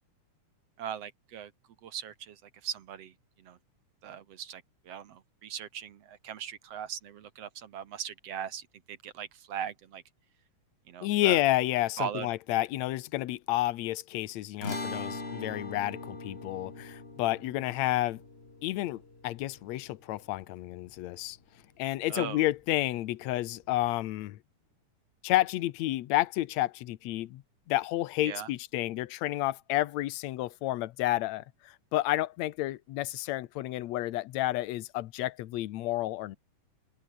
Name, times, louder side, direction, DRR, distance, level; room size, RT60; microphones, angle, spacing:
voice 1, 0.8-1.5 1.8-3.6 4.0-10.0 10.9-11.4 12.0-12.3 22.1-22.4 28.2-28.5, right 9 dB, 60° right, 2.1 m, -39 dB
voice 2, 11.0-18.2 18.6-21.4 21.8-24.4 25.2-27.4 27.7-36.4, left 16 dB, 70° left, 2.0 m, -30 dB
sound 1, 14.6-21.1, left 3 dB, 20° left, 3.1 m, -41 dB
omnidirectional pair, 3.5 m